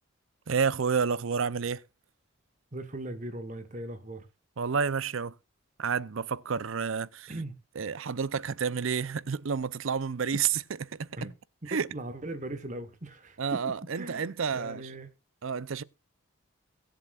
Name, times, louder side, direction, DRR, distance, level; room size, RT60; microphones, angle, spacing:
voice 1, 0.5-1.8 4.6-5.4 5.8-7.3 7.8-10.6 10.9-11.3 11.7-11.9 13.4-14.9 15.4-15.8, right 6 dB, 70° right, 0.6 m, -30 dB
voice 2, 2.7-4.3 7.3-7.5 11.2-11.3 11.9-13.4 13.9-15.1, right 1 dB, 35° right, 1.2 m, -39 dB
23.0 x 7.7 x 2.4 m
head